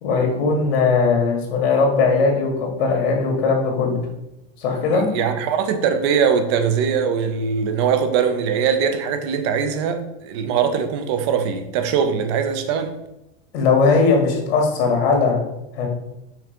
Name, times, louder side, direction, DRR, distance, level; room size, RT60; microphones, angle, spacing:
voice 1, 0.0-4.0 4.6-5.1 13.5-15.4 15.7-15.9, left 4 dB, 70° left, 1 dB, 1.9 m, -19 dB
voice 2, 4.9-12.9, right 7 dB, 30° right, 8 dB, 0.4 m, -21 dB
5.9 x 3.6 x 5.1 m, 0.89 s
supercardioid pair, 180°, 31 cm